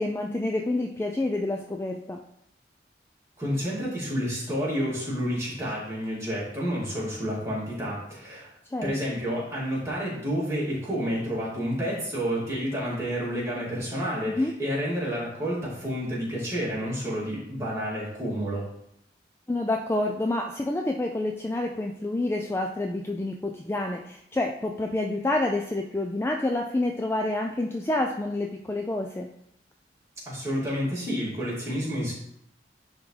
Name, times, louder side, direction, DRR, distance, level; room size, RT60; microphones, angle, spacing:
voice 1, 0.0-2.2 8.7-8.9 14.3-14.5 19.5-29.3, left 2 dB, 15° left, 2 dB, 0.3 m, -28 dB
voice 2, 3.4-8.5 8.8-18.6 30.3-32.1, equal, 15° right, -7 dB, 2.3 m, -30 dB
9.9 x 3.6 x 3.2 m, 0.75 s
head